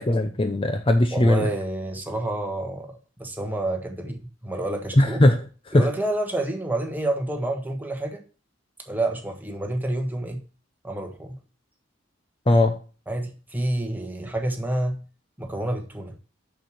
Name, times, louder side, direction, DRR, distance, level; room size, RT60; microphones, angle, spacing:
voice 1, 0.0-1.5 5.0-5.4 5.7-5.9 12.5-12.7, left 1 dB, 30° left, 7 dB, 0.7 m, -19 dB
voice 2, 1.1-2.9 3.2-5.2 5.7-8.2 8.8-10.4 10.8-11.4 13.1-15.0 15.4-16.1, right 1 dB, 10° right, 3 dB, 1.5 m, -28 dB
6.6 x 6.3 x 6.5 m, 0.36 s
head